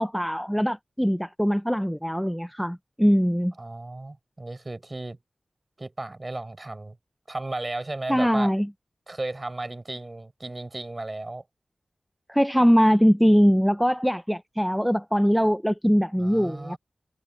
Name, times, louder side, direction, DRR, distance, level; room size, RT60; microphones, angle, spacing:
voice 1, 0.0-3.5 8.1-8.7 12.3-16.8, equal, ahead, 0.6 m, -22 dB
voice 2, 3.6-5.2 5.8-7.0 7.3-8.5 9.1-11.4 16.2-16.8, right 2 dB, 35° right, 5.4 m, -34 dB
wide cardioid pair, 60°, 0 cm